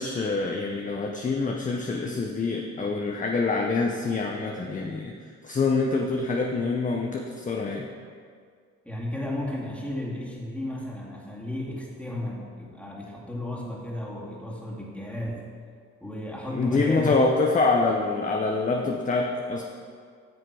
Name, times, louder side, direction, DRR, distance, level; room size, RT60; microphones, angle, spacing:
voice 1, 0.0-5.1 5.4-7.9 16.5-19.6, left 3 dB, 25° left, 1 dB, 0.7 m, -25 dB
voice 2, 8.8-15.5 16.0-17.1, left 1 dB, 5° left, -4 dB, 2.2 m, -34 dB
9.4 x 6.5 x 4.8 m, 2.1 s
cardioid pair, 90°, 30 cm